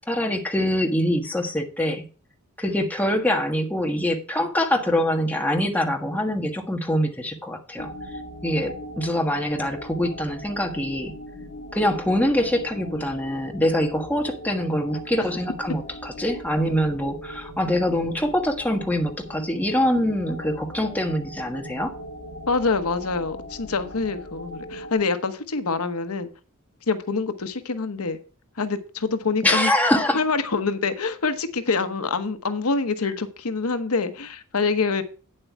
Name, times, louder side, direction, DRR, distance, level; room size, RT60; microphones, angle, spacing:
voice 1, 0.1-2.0 2.6-7.9 8.4-11.1 11.7-21.9 29.4-30.2, left 1 dB, 10° left, 1.4 m, -24 dB
sound 1, 7.8-24.9, equal, 50° left, 3.4 m, -39 dB
voice 2, 22.5-26.3 26.9-28.2 28.6-29.7 30.1-35.0, left 4 dB, 80° left, 1.0 m, -25 dB
9.2 x 7.7 x 4.6 m
head